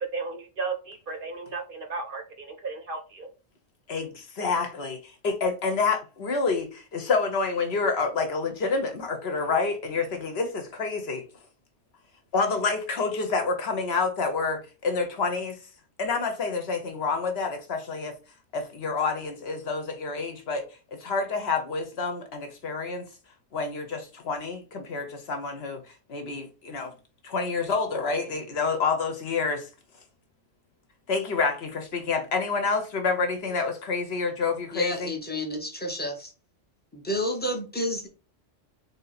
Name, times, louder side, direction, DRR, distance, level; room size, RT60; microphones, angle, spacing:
voice 1, 0.1-3.3, right 4 dB, 55° right, 0.8 m, -34 dB
voice 2, 3.9-11.2 12.3-15.6 16.0-18.1 18.5-20.6 21.0-23.0 23.5-25.8 26.1-26.9 27.2-29.7 31.1-35.1, left 4 dB, 60° left, 1.0 m, -28 dB
voice 3, 34.7-36.3 36.9-38.1, left 1 dB, 10° left, 0.7 m, -30 dB
3.5 x 2.8 x 4.0 m
omnidirectional pair, 1.3 m